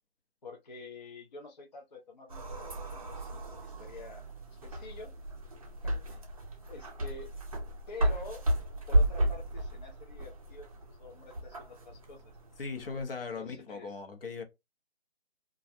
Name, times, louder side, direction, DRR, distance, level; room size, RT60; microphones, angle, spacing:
voice 1, 0.4-3.3 3.6-4.2 4.5-5.1 5.8-6.2 6.7-7.3 7.9-8.5 8.9-12.3 13.3-14.0, left 3 dB, 45° left, 0.4 m, -48 dB
sound 1, 2.3-13.0, right 1 dB, 35° right, 0.5 m, -33 dB
voice 2, 12.6-14.4, left 4 dB, 60° left, 0.8 m, -38 dB
2.3 x 2.0 x 2.7 m
figure-of-eight pair, 155°, 32 cm